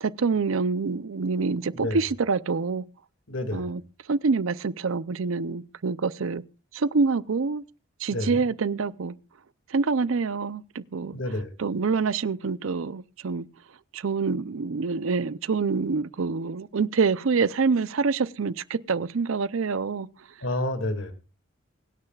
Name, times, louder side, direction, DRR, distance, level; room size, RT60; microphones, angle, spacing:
voice 1, 0.0-2.8 3.5-3.8 4.1-6.4 6.7-7.6 8.0-9.1 9.7-11.2 11.6-13.5 13.9-20.1, right 4 dB, 75° right, 0.5 m, -26 dB
voice 2, 1.7-2.0 3.3-3.8 8.1-8.4 11.1-11.5 20.4-21.1, left 1 dB, 65° left, 2.2 m, -30 dB
24.0 x 9.8 x 2.4 m
head